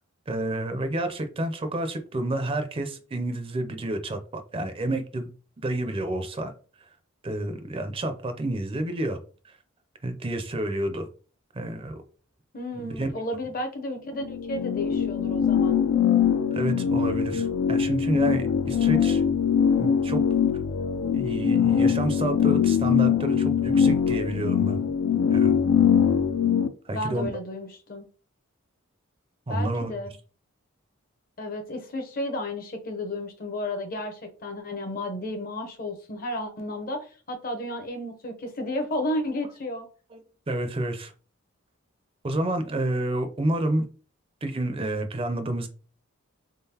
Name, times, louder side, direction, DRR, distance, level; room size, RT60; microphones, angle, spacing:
voice 1, 0.3-5.3 5.6-6.5 7.2-9.2 9.4-9.5 10.0-11.1 11.5-12.0 12.8-13.1 16.5-19.2 19.8-20.2 21.1-24.8 25.3-25.6 26.8-27.3 29.5-29.9 40.1-40.2 40.5-41.1 42.2-43.9 44.4-45.7, right 1 dB, 25° right, 0.5 m, -29 dB
voice 2, 12.5-15.8 26.9-28.1 29.5-30.1 31.4-39.9, left 1 dB, 45° left, 0.7 m, -32 dB
sound 1, 14.2-26.7, left 7 dB, 65° left, 0.4 m, -22 dB
3.8 x 3.6 x 2.8 m
head